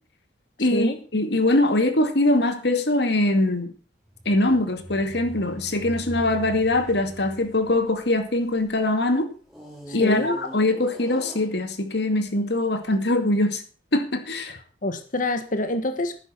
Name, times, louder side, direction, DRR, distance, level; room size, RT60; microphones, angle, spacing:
voice 1, 0.6-3.7 4.3-9.3 9.9-13.6 13.9-14.6, left 2 dB, 65° left, 2.3 m, -22 dB
sound 1, 4.0-8.7 9.5-12.0 12.7-12.8, equal, ahead, 5.5 m, -41 dB
voice 2, 9.9-10.4 14.5-14.6 14.8-16.2, left 1 dB, 45° left, 1.5 m, -26 dB
11.5 x 9.9 x 6.2 m
head